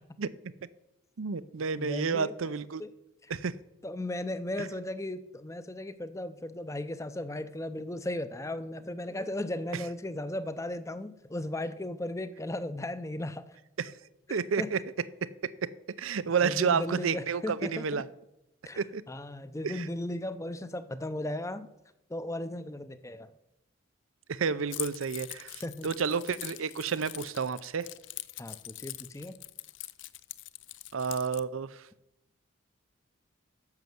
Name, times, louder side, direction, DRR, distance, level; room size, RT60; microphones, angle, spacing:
voice 1, 1.2-2.8 3.3-3.5 13.8-13.9 14.3-14.8 15.4-15.7 16.0-18.0 18.8-19.0 19.6-19.8 24.3-27.9 30.9-31.8, right 6 dB, 85° right, 17 dB, 0.6 m, -30 dB
voice 2, 1.8-2.3 2.8-2.9 3.2-3.3 3.8-13.4 14.3-14.7 16.4-18.0 18.6-18.8 19.1-21.7 22.1-23.3 25.6-25.9 28.4-29.3, left 1 dB, 15° left, 12 dB, 0.6 m, -36 dB
Keys jangling, 24.7-31.4, left 17 dB, 65° left, 0.5 m, -43 dB
10.5 x 7.1 x 7.7 m, 0.88 s
head